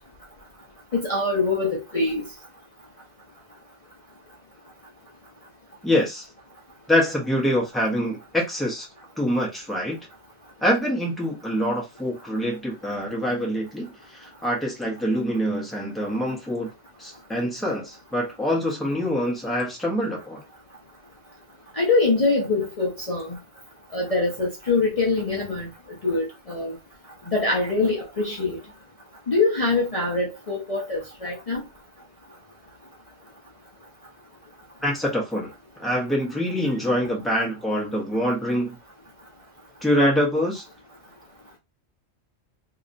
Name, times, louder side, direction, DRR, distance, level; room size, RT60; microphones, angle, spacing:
voice 1, 0.9-2.2 21.8-23.4 23.9-25.7 26.0-26.7 27.3-28.6 29.3-31.6, left 3 dB, 35° left, 0.8 m, -24 dB
voice 2, 5.8-6.3 6.9-8.9 9.2-10.0 10.6-16.7 17.0-20.4 34.8-35.5 35.8-38.8 39.8-40.6, equal, ahead, 1.1 m, -25 dB
2.9 x 2.9 x 2.6 m
omnidirectional pair, 1.1 m